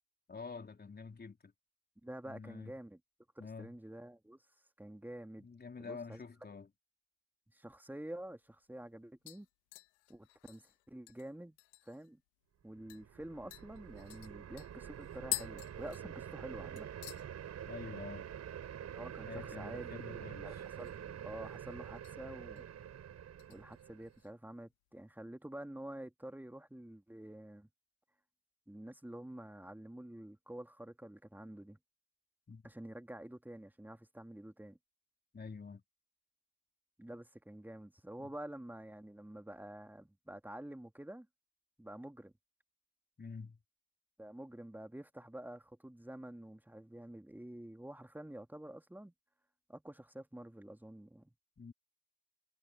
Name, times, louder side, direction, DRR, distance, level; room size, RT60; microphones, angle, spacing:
voice 1, 0.3-1.5 2.2-2.7 3.4-3.7 5.4-6.7 17.6-18.3 19.3-20.6 32.5-32.6 35.3-35.8 38.2-38.3 43.2-43.6 51.6-51.7, left 4 dB, 30° left, 3.5 m, -47 dB
voice 2, 2.0-3.0 3.3-4.4 4.8-5.5 5.8-6.2 7.5-9.5 10.1-11.6 11.8-12.2 12.6-16.9 18.9-22.7 23.5-27.7 28.7-31.8 32.6-34.8 37.0-41.3 41.8-42.3 44.2-49.1 49.7-51.3, right 1 dB, 5° right, 3.0 m, -48 dB
sound 1, 8.2-8.3 8.6-9.0 9.3-12.1 12.4-12.5 12.9-13.1 13.5-16.5 16.8-17.3 17.6-18.0 18.3-18.4 20.5-21.1 21.4-22.2 22.6-22.8 23.4-24.3 24.7-24.8, left 25 dB, 80° left, 1.7 m, -46 dB
sound 2, 12.8-24.2, right 9 dB, 55° right, 4.1 m, -47 dB
hypercardioid pair, 50°, 32 cm